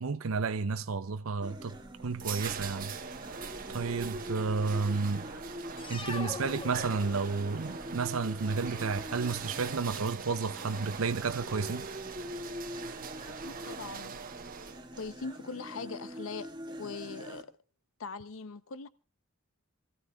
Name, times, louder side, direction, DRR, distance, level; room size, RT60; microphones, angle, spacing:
voice 1, 0.0-2.9 3.7-5.3 5.9-11.9, right 4 dB, 85° right, 0.7 m, -32 dB
sound 1, 1.4-17.4, equal, 20° right, 1.8 m, -45 dB
sound 2, 1.7-15.1, right 6 dB, 40° right, 1.2 m, -42 dB
sound 3, 5.8-7.6, left 3 dB, 25° left, 1.1 m, -41 dB
voice 2, 13.3-14.2 15.0-17.5 18.0-18.9, left 4 dB, 75° left, 0.8 m, -41 dB
27.5 x 15.0 x 2.3 m
head